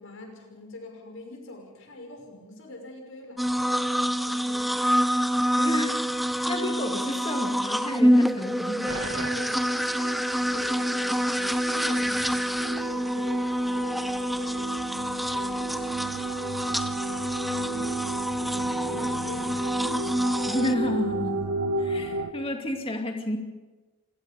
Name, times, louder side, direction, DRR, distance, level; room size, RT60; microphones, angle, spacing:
voice 1, 0.0-5.1 9.3-14.7 15.0-16.9 17.5-20.0, left 2 dB, 65° left, 2 dB, 5.8 m, -45 dB
sound 1, 3.4-20.7, equal, ahead, 0.6 m, -26 dB
voice 2, 5.6-6.0 6.5-9.0 20.4-21.5 21.8-23.4, left 1 dB, 25° left, 3 dB, 2.4 m, -31 dB
sound 2, 8.9-22.3, right 2 dB, 70° right, 1.6 m, -35 dB
27.5 x 19.0 x 5.3 m, 1.2 s
head